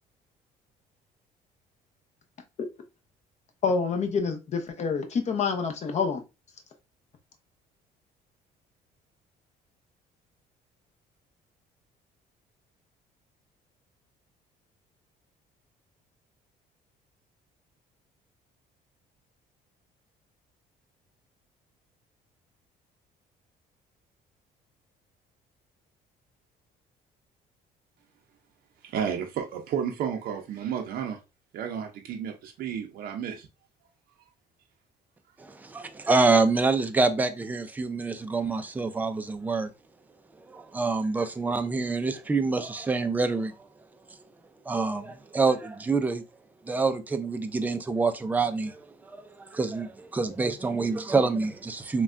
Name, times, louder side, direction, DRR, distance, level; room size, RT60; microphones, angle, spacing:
voice 1, 3.6-6.2, left 5 dB, 40° left, 0.7 m, -27 dB
voice 2, 28.8-31.2 31.5-33.5, right 8 dB, 60° right, 0.5 m, -32 dB
voice 3, 35.4-39.7 40.5-43.5 44.7-46.2 46.7-52.0, right 3 dB, 10° right, 0.3 m, -26 dB
3.3 x 2.2 x 2.4 m
cardioid pair, 110°, 17 cm